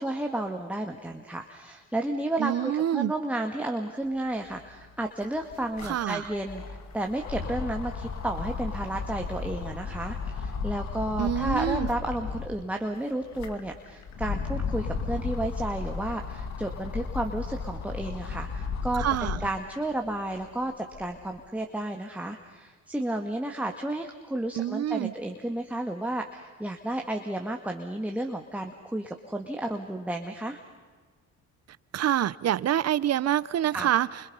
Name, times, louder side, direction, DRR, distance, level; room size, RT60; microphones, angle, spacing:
voice 1, 0.0-30.6 33.7-33.9, right 1 dB, 5° right, 2.0 m, -32 dB
voice 2, 2.4-3.1 5.8-6.2 11.2-11.9 19.0-19.4 24.6-25.1 31.9-34.1, right 11 dB, 55° right, 0.8 m, -26 dB
sound 1, 4.5-4.6 4.8-12.6 13.1-19.6 20.1-21.3, left 5 dB, 65° left, 2.4 m, -34 dB
29.5 x 26.5 x 5.6 m
cardioid pair, 90°, 30 cm